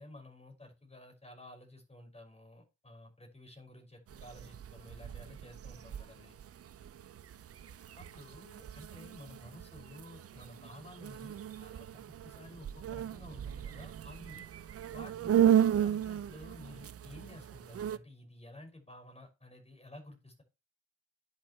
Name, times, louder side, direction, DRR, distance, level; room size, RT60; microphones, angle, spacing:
voice 1, 0.0-6.4 8.0-11.9 12.2-14.5 14.9-20.4, left 1 dB, 15° left, 2 dB, 5.8 m, -52 dB
sound 1, 4.1-18.0, right 10 dB, 40° right, 0.7 m, -35 dB
9.9 x 6.8 x 3.1 m, 0.27 s
hypercardioid pair, 50°, 36 cm